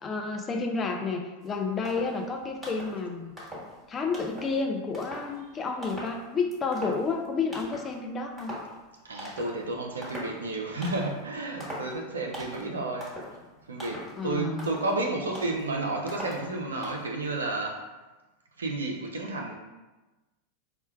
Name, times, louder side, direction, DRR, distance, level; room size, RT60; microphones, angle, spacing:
voice 1, 0.0-3.3 3.9-8.6 14.2-14.7, left 4 dB, 30° left, 3 dB, 0.3 m, -30 dB
sound 1, 1.4-1.5 1.9-2.3 2.6-3.0 3.4-3.8 4.1-4.6 4.9-5.4 5.8-6.2 6.5-7.3 7.5-7.9 8.4-8.8 9.2-9.6 10.0-10.4 10.8-11.2 11.6-12.0 12.3-12.7 13.0-13.4 13.8-14.2 14.5-14.9 15.4-15.7 16.1-16.5 16.8-17.1, equal, 5° right, 1.3 m, -41 dB
voice 2, 9.1-13.1 13.7-17.7 18.6-19.6, right 2 dB, 85° right, 0 dB, 0.4 m, -31 dB
4.3 x 2.1 x 2.2 m, 1.1 s
hypercardioid pair, 90°, 0 cm